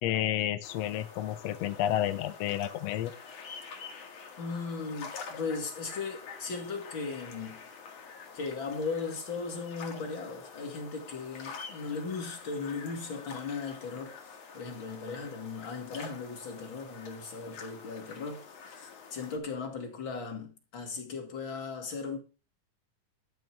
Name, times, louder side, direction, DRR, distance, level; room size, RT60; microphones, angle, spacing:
voice 1, 0.0-3.1, left 12 dB, 85° left, 1.4 m, -30 dB
sound 1, 0.6-19.4, left 5 dB, 55° left, 2.9 m, -47 dB
voice 2, 4.4-7.6 8.3-14.2 14.5-22.2, left 4 dB, 40° left, 3.0 m, -37 dB
12.5 x 6.6 x 6.1 m
omnidirectional pair, 3.8 m